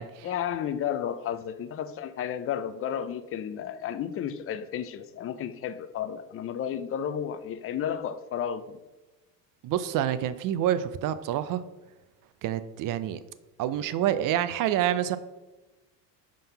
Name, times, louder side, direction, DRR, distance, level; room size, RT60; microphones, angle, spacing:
voice 1, 0.2-8.8, left 9 dB, 30° left, 0.5 m, -32 dB
voice 2, 9.6-11.6 12.4-13.2 13.6-15.2, right 11 dB, 40° right, 0.5 m, -27 dB
5.4 x 3.8 x 5.6 m
hypercardioid pair, 85°, 50 cm